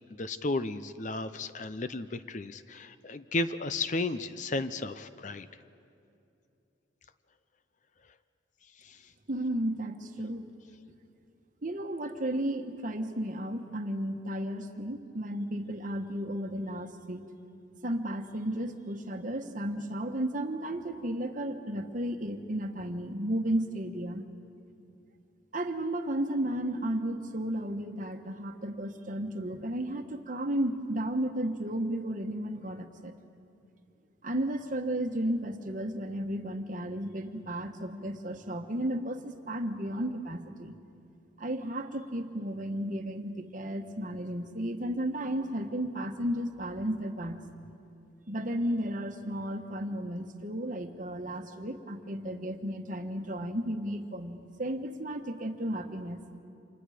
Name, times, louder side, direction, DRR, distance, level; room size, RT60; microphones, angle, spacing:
voice 1, 0.1-5.5 8.8-9.0, left 2 dB, 40° left, 12 dB, 0.6 m, -34 dB
voice 2, 9.3-10.5 11.6-17.2 17.8-24.3 25.5-33.1 34.2-40.7 41.4-47.4 48.3-56.2, right 1 dB, 45° right, 6 dB, 1.3 m, -33 dB
29.5 x 26.5 x 5.0 m, 2.7 s
head